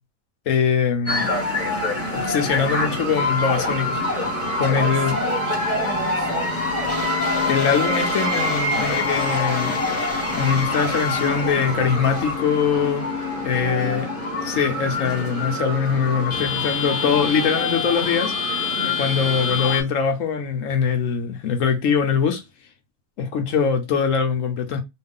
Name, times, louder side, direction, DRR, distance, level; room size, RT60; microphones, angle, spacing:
voice 1, 0.5-1.3 2.1-5.2 7.4-10.1 10.4-13.0 13.4-14.1 14.5-22.4 23.2-24.8, left 6 dB, 60° left, 1.0 m, -22 dB
sound 1, 1.1-19.8, left 2 dB, 10° left, 1.0 m, -25 dB
voice 2, 4.7-6.5 13.5-14.4, right 9 dB, 70° right, 1.0 m, -34 dB
3.2 x 2.4 x 3.5 m
omnidirectional pair, 1.8 m